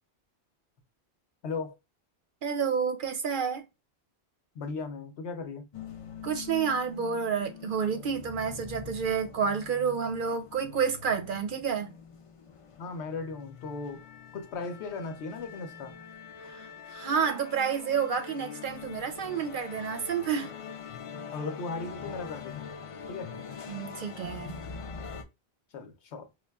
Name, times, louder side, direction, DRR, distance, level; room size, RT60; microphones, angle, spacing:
voice 1, 1.4-1.8 4.5-5.7 12.8-14.0 14.3-16.0 21.3-22.7 23.1-23.4 25.7-26.3, left 4 dB, 85° left, 1.0 m, -37 dB
voice 2, 2.4-3.6 6.2-11.9 16.4-20.5 23.7-24.6, right 6 dB, 60° right, 0.6 m, -30 dB
Orchestra tuning, 5.7-25.2, left 6 dB, 55° left, 0.3 m, -44 dB
5.0 x 2.2 x 2.3 m
omnidirectional pair, 1.1 m